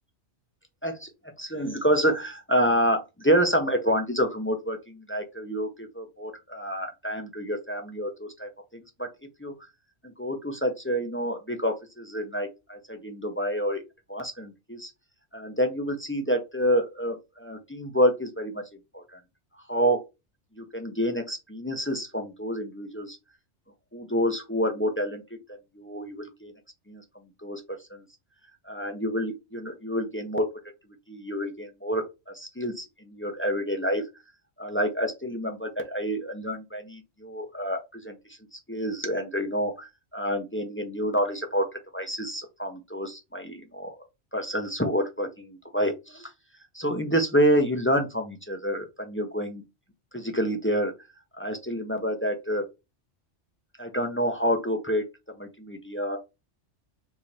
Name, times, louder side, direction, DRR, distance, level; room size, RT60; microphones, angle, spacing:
voice 1, 0.8-9.1 9.4-9.5 10.0-13.8 14.1-14.9 15.3-18.6 18.9-19.2 19.7-20.0 20.5-23.2 23.9-26.5 26.9-27.0 27.4-28.0 28.7-30.5 31.1-34.1 34.6-41.7 41.9-44.0 44.3-46.3 46.7-49.6 50.1-50.9 51.4-52.7 53.8-55.1 55.4-56.2, equal, 15° left, 0.6 m, -28 dB
5.1 x 2.8 x 3.3 m
omnidirectional pair, 1.2 m